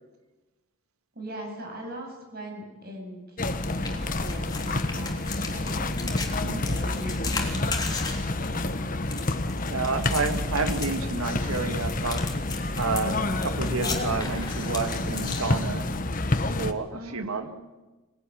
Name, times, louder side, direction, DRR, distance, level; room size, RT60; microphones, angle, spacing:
voice 1, 1.1-7.6 16.9-17.5, right 1 dB, 45° right, 2 dB, 7.6 m, -41 dB
sound 1, 3.4-16.7, left 2 dB, 40° left, 1.3 m, -29 dB
sound 2, 3.6-16.1, left 4 dB, 20° left, 3.5 m, -38 dB
voice 2, 9.7-12.3 12.8-15.9 16.5-17.5, right 3 dB, 90° right, 7 dB, 2.0 m, -30 dB
25.5 x 20.5 x 10.0 m, 1.2 s
head